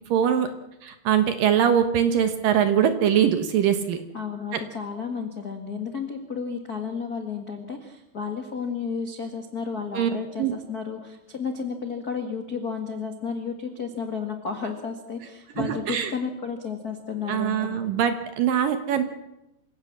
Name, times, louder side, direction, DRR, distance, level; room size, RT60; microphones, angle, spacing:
voice 1, 0.1-0.5 0.8-4.0 4.5-4.6 9.9-10.1 10.4-10.5 15.6-16.1 17.3-19.0, right 9 dB, 65° right, 9 dB, 2.5 m, -22 dB
voice 2, 4.1-17.8, left 5 dB, 50° left, 4 dB, 1.1 m, -32 dB
26.5 x 17.0 x 7.4 m, 0.90 s
omnidirectional pair, 5.0 m